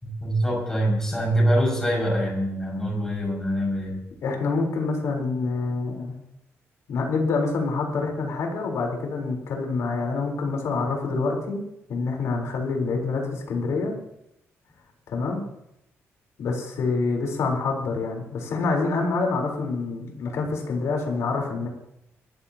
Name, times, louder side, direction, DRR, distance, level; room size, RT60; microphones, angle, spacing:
voice 1, 0.0-4.0, equal, 10° left, -3 dB, 5.9 m, -24 dB
voice 2, 4.2-6.1 6.9-11.6 11.9-13.9 15.1-15.4 16.4-21.7, left 3 dB, 75° left, 0 dB, 4.0 m, -26 dB
21.5 x 14.0 x 2.9 m, 0.80 s
cardioid pair, 155°, 5 cm